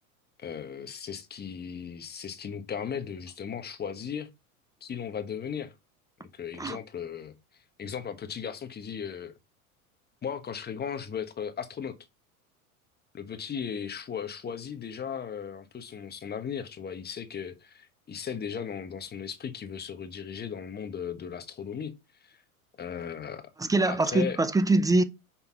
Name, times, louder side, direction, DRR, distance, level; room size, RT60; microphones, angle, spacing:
voice 1, 0.4-4.3 4.8-5.7 6.3-7.3 7.8-9.3 10.2-12.0 13.1-21.9 22.2-22.4 22.8-23.5 23.8-24.4, left 7 dB, 20° left, 1.2 m, -36 dB
voice 2, 23.6-25.0, right 2 dB, 10° right, 0.5 m, -23 dB
5.8 x 4.3 x 5.6 m
hypercardioid pair, 100°, 43 cm